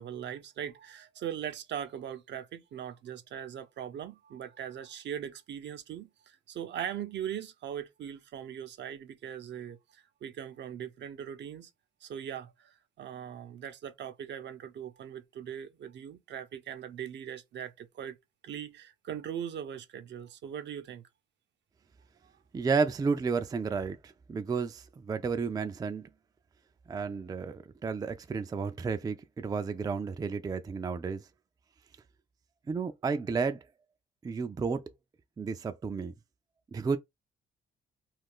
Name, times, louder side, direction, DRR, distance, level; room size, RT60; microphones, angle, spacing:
voice 1, 0.0-11.7 12.0-18.2 18.4-21.0, right 9 dB, 65° right, 0.6 m, -40 dB
voice 2, 22.5-26.1 26.9-31.2 32.7-33.6 34.2-34.8 35.4-36.1 36.7-37.0, right 5 dB, 20° right, 0.3 m, -32 dB
2.4 x 2.3 x 3.6 m
cardioid pair, 90°, 20 cm